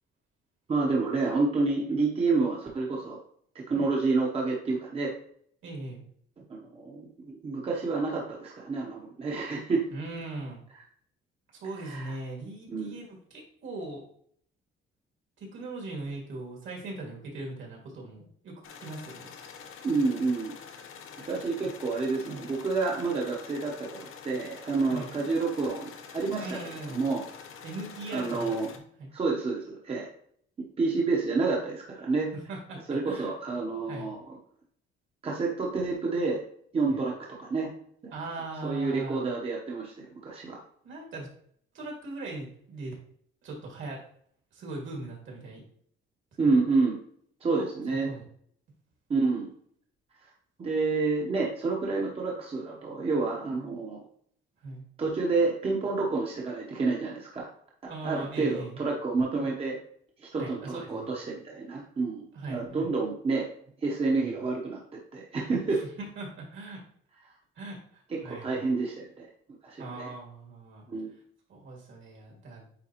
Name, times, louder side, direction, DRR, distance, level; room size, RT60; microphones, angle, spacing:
voice 1, 0.7-3.2 3.5-5.1 6.5-9.8 11.8-12.1 12.7-12.9 19.8-20.5 21.2-26.7 26.9-27.2 28.1-28.7 29.1-30.1 30.8-32.3 32.9-34.4 35.2-36.4 36.7-37.1 37.4-37.7 38.6-40.6 46.4-47.0 47.4-48.1 49.1-49.5 50.6-54.0 55.0-57.5 57.8-59.8 60.2-62.2 62.5-63.5 63.8-64.8 65.1-65.8 68.1-69.3 69.6-70.1 70.9-71.1, right 3 dB, 25° right, -2 dB, 0.9 m, -29 dB
voice 2, 5.6-6.0 9.9-10.6 11.5-14.0 15.4-19.3 22.3-22.4 24.9-25.1 26.4-27.0 27.6-29.1 32.5-33.3 33.9-34.1 36.9-37.0 38.1-39.2 40.8-41.3 41.7-42.9 43.4-44.0 44.5-45.6 46.5-46.6 47.6-48.2 54.6-54.9 57.9-58.8 60.3-61.1 62.3-62.9 64.2-64.4 65.7-66.8 67.6-68.7 69.8-70.8 71.5-72.7, right 2 dB, 65° right, -1 dB, 2.2 m, -40 dB
sound 1, 18.6-28.8, left 6 dB, 75° left, 0.9 m, -46 dB
9.1 x 3.5 x 3.0 m, 0.62 s
cardioid pair, 170°, 21 cm